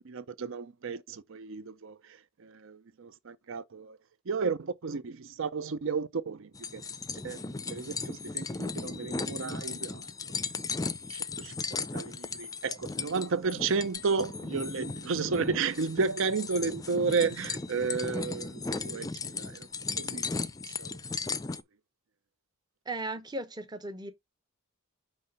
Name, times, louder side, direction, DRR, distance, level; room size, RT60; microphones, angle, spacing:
voice 1, 0.0-4.0 4.3-6.8 7.2-10.1 11.1-19.1 19.4-19.7 20.0-20.3 20.8-21.0, right 4 dB, 65° right, 0.6 m, -33 dB
sound 1, 6.5-21.6, left 4 dB, 15° left, 0.4 m, -36 dB
voice 2, 22.9-24.1, right 2 dB, 20° right, 0.8 m, -36 dB
5.5 x 3.2 x 5.5 m
head